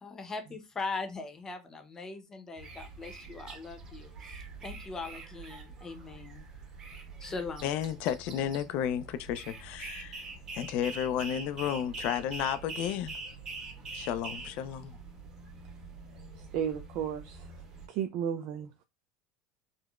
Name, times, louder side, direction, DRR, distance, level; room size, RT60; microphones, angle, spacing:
voice 1, 0.0-6.5 7.2-7.8, left 3 dB, 25° left, 0.7 m, -40 dB
sound 1, 2.6-17.9, right 4 dB, 35° right, 1.1 m, -45 dB
voice 2, 7.6-10.2 10.5-13.2 13.9-15.0, left 10 dB, 60° left, 0.4 m, -32 dB
voice 3, 16.5-17.5 17.9-18.7, right 9 dB, 60° right, 0.3 m, -33 dB
3.7 x 2.1 x 2.4 m
supercardioid pair, 105°, 2 cm